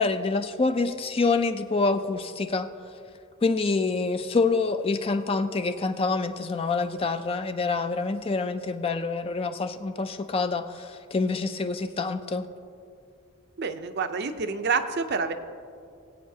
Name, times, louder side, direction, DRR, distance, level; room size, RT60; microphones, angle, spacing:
voice 1, 0.0-2.7 3.4-12.5, left 3 dB, 25° left, 9 dB, 0.3 m, -26 dB
voice 2, 13.6-15.3, right 5 dB, 50° right, 8 dB, 0.6 m, -28 dB
21.0 x 8.4 x 2.7 m, 2.5 s
head